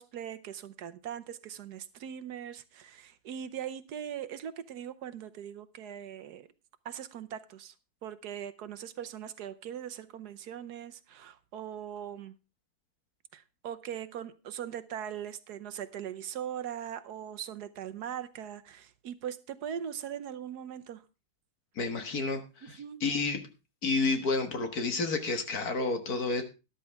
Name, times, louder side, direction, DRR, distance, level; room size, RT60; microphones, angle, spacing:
voice 1, 0.0-6.5 6.8-7.7 8.0-12.3 13.3-21.0 22.6-23.0, right 9 dB, 65° right, 1.3 m, -40 dB
voice 2, 21.8-23.4 23.8-26.4, left 3 dB, 55° left, 1.9 m, -30 dB
13.0 x 11.5 x 3.5 m
omnidirectional pair, 1.9 m